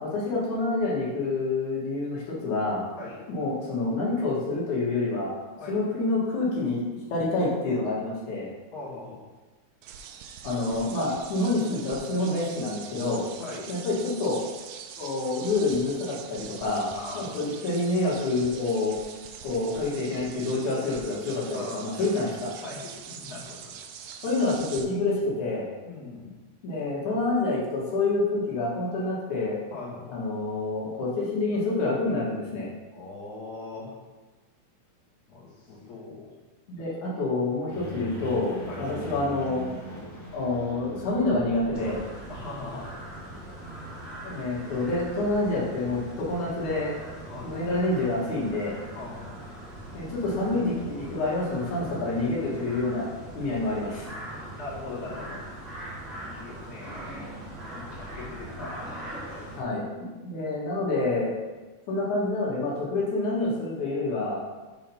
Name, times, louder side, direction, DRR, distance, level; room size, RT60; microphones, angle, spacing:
voice 1, 0.0-2.8 3.3-5.3 5.7-8.5 10.4-13.2 13.7-14.4 15.0-16.9 17.1-19.0 19.4-22.5 24.2-25.7 26.6-29.6 30.1-32.7 36.7-39.6 40.3-42.0 44.2-46.9 47.4-48.8 49.9-53.1 53.3-54.1 58.6-58.7 59.5-61.3 61.9-64.4, left 2 dB, 75° left, -6 dB, 3.1 m, -27 dB
voice 2, 8.7-9.2 13.4-13.7 16.9-17.3 21.5-22.1 22.6-23.8 24.1-24.2 25.8-26.4 29.7-30.1 32.9-33.9 35.3-36.3 38.7-38.9 42.3-42.9 47.3-47.6 48.9-49.5 54.5-55.4 56.2-57.3 57.7-59.6, left 3 dB, 35° left, -8 dB, 2.5 m, -40 dB
Chidori (raikiri) - Thousand birds, 9.8-24.8, right 7 dB, 80° right, 1.8 m, -43 dB
sound 1, 37.7-46.3, left 1 dB, 15° left, 0.6 m, -43 dB
sound 2, 41.7-59.6, right 1 dB, 20° right, 1.5 m, -41 dB
7.0 x 4.4 x 5.5 m, 1.2 s
omnidirectional pair, 3.4 m